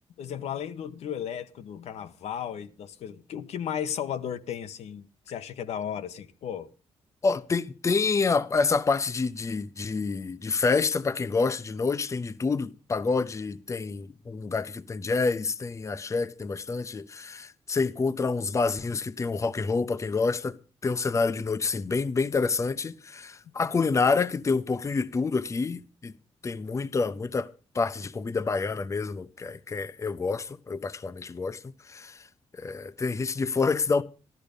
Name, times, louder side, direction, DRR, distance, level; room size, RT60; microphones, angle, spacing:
voice 1, 0.2-6.7, left 9 dB, 85° left, 1.1 m, -35 dB
voice 2, 7.2-20.6 20.8-26.1 26.4-32.3 32.5-34.0, left 4 dB, 30° left, 0.7 m, -28 dB
14.0 x 13.0 x 5.2 m
cardioid pair, 120°, 11 cm